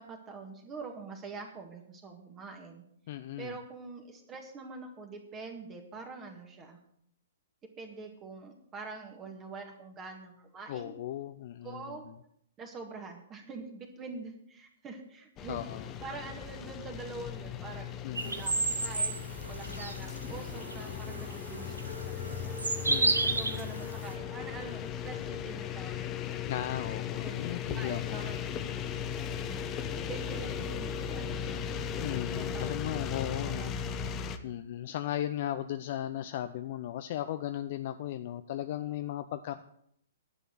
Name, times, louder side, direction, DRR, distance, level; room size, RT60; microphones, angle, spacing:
voice 1, 0.0-2.8 3.4-6.8 7.8-11.0 11.6-12.0 12.6-15.6 16.0-22.6 22.9-23.0 23.2-26.5 27.1-28.5 29.4-29.7 29.9-31.6 32.4-32.8 33.1-34.1, right 4 dB, 25° right, 3 dB, 1.8 m, -45 dB
voice 2, 3.1-3.5 10.7-12.0 15.5-15.9 18.0-18.5 22.9-23.8 26.5-28.3 32.0-33.8 34.4-39.6, left 12 dB, 50° left, 10 dB, 0.5 m, -37 dB
sound 1, 15.4-34.4, left 8 dB, 25° left, 0.9 m, -37 dB
sound 2, 18.2-24.1, right 3 dB, 85° right, 1.4 m, -33 dB
11.0 x 6.9 x 7.8 m, 0.71 s
figure-of-eight pair, 120°, 0 cm